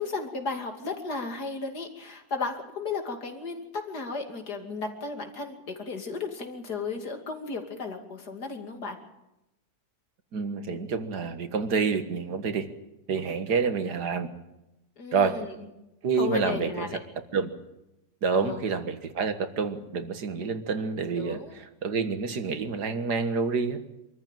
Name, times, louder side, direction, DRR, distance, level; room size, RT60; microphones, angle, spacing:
voice 1, 0.0-9.0 15.0-15.5 16.2-17.0 18.3-18.6 21.2-21.5, left 4 dB, 80° left, 4 dB, 3.1 m, -34 dB
voice 2, 10.3-12.7 13.1-14.3 15.1-15.4 16.0-16.9 17.3-17.5 18.2-23.8, right 5 dB, 85° right, 9 dB, 2.1 m, -28 dB
24.0 x 14.0 x 9.1 m, 0.92 s
omnidirectional pair, 1.7 m